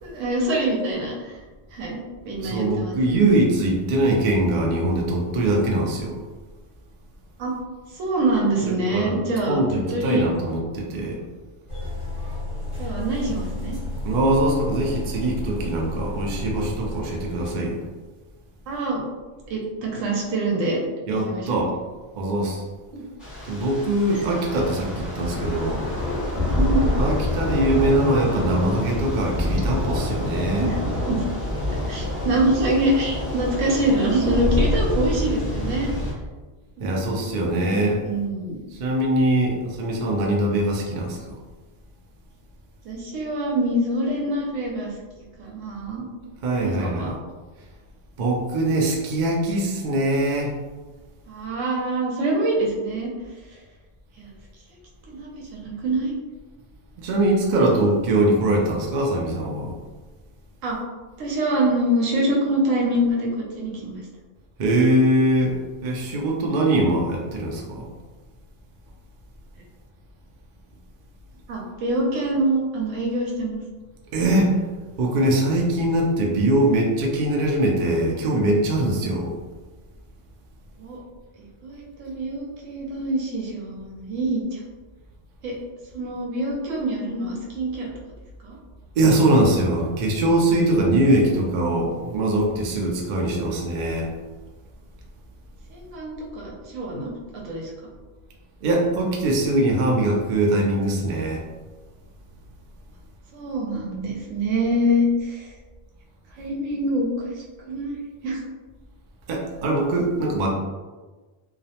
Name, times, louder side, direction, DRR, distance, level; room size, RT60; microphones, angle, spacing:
voice 1, 0.0-1.3 1.7-3.0 7.4-7.5 7.9-9.6 9.9-10.2 12.8-13.8 18.7-19.0 19.5-20.8 21.2-21.5 22.9-23.0 26.5-26.9 30.6-30.8 31.1-31.2 31.9-35.9 36.8-37.0 37.6-37.7 38.0-38.6 42.8-44.9 45.4-47.1 51.3-53.1 54.2-54.3 55.1-56.1 60.6-60.8 61.2-63.3 63.6-64.0 71.5-73.6 80.8-81.0 81.4-84.4 85.4-85.5 85.9-87.9 88.4-88.6 95.7-97.1 97.4-97.7 103.3-105.5 106.4-107.3 107.7-108.0 108.2-108.4, right 1 dB, 85° right, -2 dB, 1.0 m, -25 dB
voice 2, 2.4-6.2 8.6-9.2 9.5-11.2 14.0-17.8 21.1-21.7 22.2-22.6 23.5-25.9 26.9-30.7 36.8-38.0 38.7-41.3 46.4-47.1 48.2-50.5 57.0-59.7 64.6-67.9 74.1-74.6 75.0-79.3 89.0-94.1 98.6-101.4 109.3-110.5, right 1 dB, 65° right, 0 dB, 0.4 m, -22 dB
sound 1, 11.7-17.5, left 1 dB, 30° right, 0.8 m, -32 dB
Thunder / Rain, 23.2-36.1, left 1 dB, ahead, 0.4 m, -26 dB
2.3 x 2.0 x 2.7 m, 1.3 s
omnidirectional pair, 1.3 m